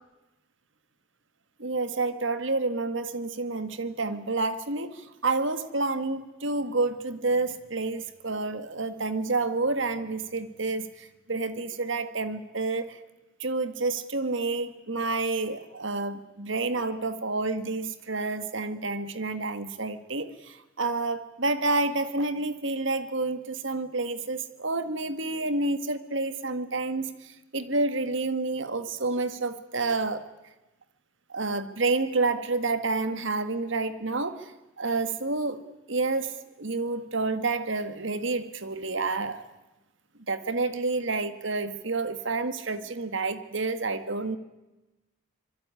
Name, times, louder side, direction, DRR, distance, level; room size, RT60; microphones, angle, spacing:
voice 1, 1.6-13.0 13.4-30.2 31.3-35.6 35.9-39.5 40.3-44.4, right 3 dB, 60° right, 11 dB, 1.8 m, -29 dB
25.5 x 23.0 x 9.8 m, 1.0 s
head